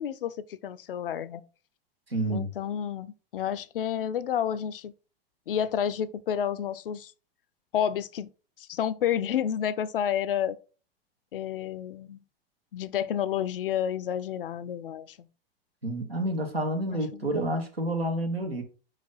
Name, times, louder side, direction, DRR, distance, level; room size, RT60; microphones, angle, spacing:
voice 1, 0.0-1.4 2.3-4.9 5.5-7.1 7.7-8.3 8.6-10.6 11.3-12.2 12.7-15.2 16.9-17.4, left 9 dB, 65° left, 0.5 m, -30 dB
voice 2, 2.1-2.5 15.8-18.6, right 1 dB, 90° right, 1.3 m, -29 dB
5.2 x 4.9 x 3.9 m
figure-of-eight pair, 90°, 29 cm